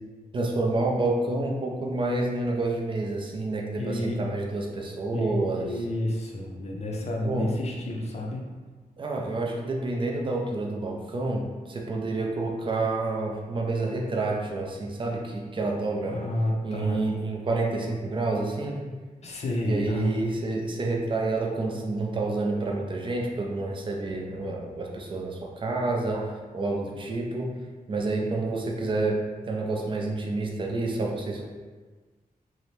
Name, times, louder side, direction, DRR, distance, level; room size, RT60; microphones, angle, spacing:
voice 1, 0.3-5.7 7.2-7.5 9.0-16.2 16.6-18.9 19.7-27.5 27.9-29.2 29.5-31.4, right 2 dB, 35° right, 0 dB, 0.4 m, -29 dB
voice 2, 3.8-4.2 5.1-8.5 16.1-17.0 19.2-20.1, left 1 dB, 45° left, -1 dB, 0.5 m, -30 dB
2.7 x 2.1 x 3.1 m, 1.4 s
wide cardioid pair, 150°, 15 cm